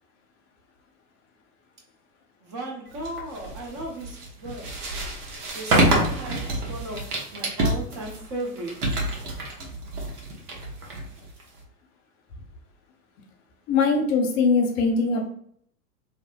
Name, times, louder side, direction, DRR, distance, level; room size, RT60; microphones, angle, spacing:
voice 1, 2.4-4.8 5.5-9.0, right 1 dB, 35° right, -1 dB, 0.9 m, -36 dB
sound 1, 2.9-11.6, right 1 dB, 65° right, 1.0 m, -27 dB
voice 2, 13.7-15.3, left 4 dB, 50° left, 1 dB, 0.8 m, -21 dB
2.8 x 2.0 x 2.5 m, 0.62 s
figure-of-eight pair, 95°, 48 cm